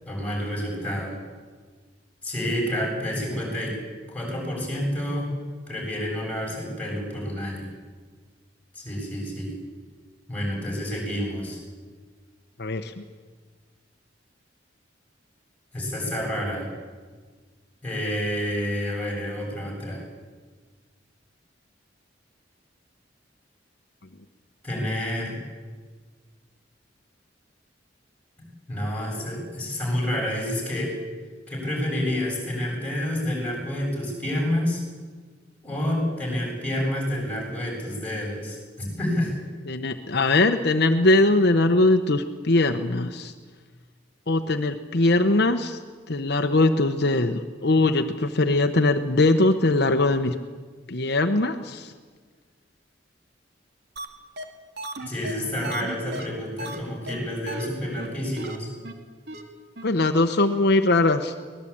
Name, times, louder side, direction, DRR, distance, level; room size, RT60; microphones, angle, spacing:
voice 1, 0.0-1.2 2.2-3.8 4.1-5.3 5.7-7.7 8.7-9.6 10.3-11.6 15.7-16.7 17.8-20.0 24.6-25.4 28.7-31.0 31.5-34.8 35.6-39.3 55.0-58.7, left 1 dB, 10° left, -2 dB, 7.8 m, -29 dB
voice 2, 12.6-12.9 39.7-43.3 44.3-45.8 46.1-50.3 50.9-51.9 59.8-61.3, left 2 dB, 60° left, 6 dB, 1.0 m, -21 dB
sound 1, 54.0-54.1 54.4-54.5 54.8-56.8 57.1-57.2 57.5-57.7 58.0-58.1 58.4-58.6 58.8-58.9 59.3-59.4 59.8-59.9 60.1-60.2, right 1 dB, 60° right, 2.2 m, -35 dB
24.0 x 19.0 x 8.7 m, 1.5 s
head